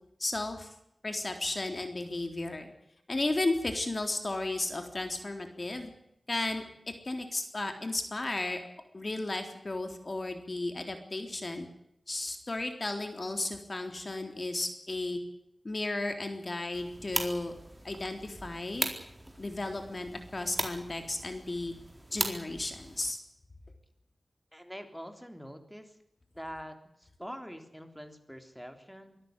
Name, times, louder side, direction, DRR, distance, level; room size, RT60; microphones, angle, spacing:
voice 1, 0.2-0.7 1.0-2.7 3.1-5.9 6.3-6.6 7.0-8.6 8.9-11.7 12.1-15.2 15.6-17.5 17.8-18.9 19.4-21.7 22.1-23.2, left 2 dB, 45° left, 6 dB, 3.8 m, -34 dB
sound 1, 16.7-23.1, right 1 dB, 20° right, 4.2 m, -39 dB
voice 2, 24.5-26.0 26.3-29.2, equal, ahead, 7 dB, 3.5 m, -45 dB
24.5 x 13.5 x 9.7 m, 0.77 s
wide cardioid pair, 70°, 0 cm